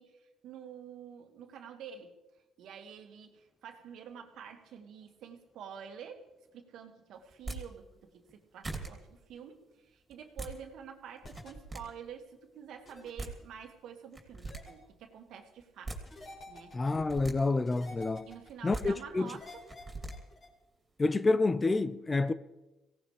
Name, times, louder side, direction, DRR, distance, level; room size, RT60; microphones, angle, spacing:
voice 1, 0.0-2.2 2.6-6.2 6.5-16.0 16.5-16.8 18.3-19.6, right 7 dB, 70° right, 1.8 m, -48 dB
sound 1, 7.3-7.6 8.3-8.4 8.6-8.9 10.1-10.5 11.2-11.8 12.9-13.0 13.2-13.3 14.1-14.6 15.6-16.0 16.9-17.3 18.5-18.8 19.7-20.1, right 2 dB, 20° right, 3.0 m, -40 dB
sound 2, 11.2-11.5 12.9-13.1 14.5-14.7 16.1-16.9 17.7-18.5 19.3-20.5, left 1 dB, 40° left, 4.2 m, -49 dB
voice 2, 16.7-18.3 18.6-19.3 21.0-22.3, left 3 dB, 20° left, 0.5 m, -28 dB
23.0 x 17.5 x 3.3 m
cardioid pair, 115°, 0 cm